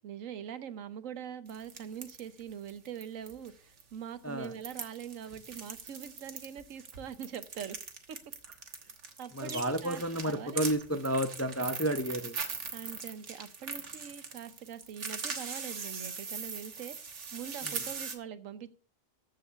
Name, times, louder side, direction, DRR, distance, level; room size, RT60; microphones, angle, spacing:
voice 1, 0.0-7.8 8.1-8.2 9.2-10.6 12.7-18.7, right 8 dB, 90° right, 1.2 m, -43 dB
sound 1, 1.5-3.5 3.8-3.9 4.4-18.2, right 5 dB, 65° right, 1.7 m, -41 dB
voice 2, 9.3-12.4, right 1 dB, 20° left, 0.4 m, -31 dB
14.0 x 4.8 x 6.9 m
omnidirectional pair, 1.3 m